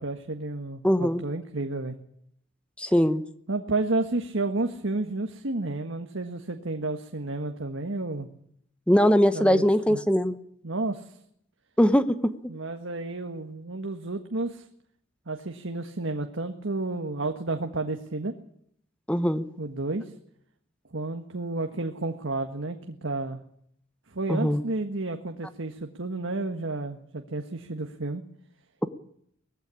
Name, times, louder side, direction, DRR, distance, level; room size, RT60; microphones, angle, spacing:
voice 1, 0.0-2.0 3.5-8.3 9.3-10.0 10.6-11.2 12.5-14.6 15.3-18.3 19.6-20.1 20.9-23.4 24.1-28.2, right 2 dB, 70° right, 6 dB, 1.6 m, -31 dB
voice 2, 0.8-1.2 2.8-3.2 8.9-10.4 11.8-12.3 19.1-19.4 24.3-24.6, equal, 5° left, 12 dB, 1.0 m, -21 dB
20.0 x 15.5 x 10.0 m, 0.69 s
head